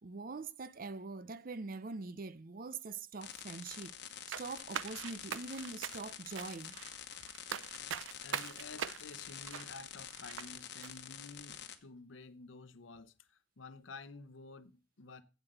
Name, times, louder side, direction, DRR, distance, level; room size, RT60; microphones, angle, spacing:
voice 1, 0.0-6.8, right 3 dB, 45° right, 0.6 m, -44 dB
sound 1, 3.2-11.8, left 9 dB, 60° left, 1.1 m, -48 dB
sound 2, 4.3-10.5 10.8-10.9, right 8 dB, 90° right, 0.6 m, -42 dB
voice 2, 7.8-15.2, left 3 dB, 80° left, 0.8 m, -52 dB
8.2 x 7.4 x 7.9 m
head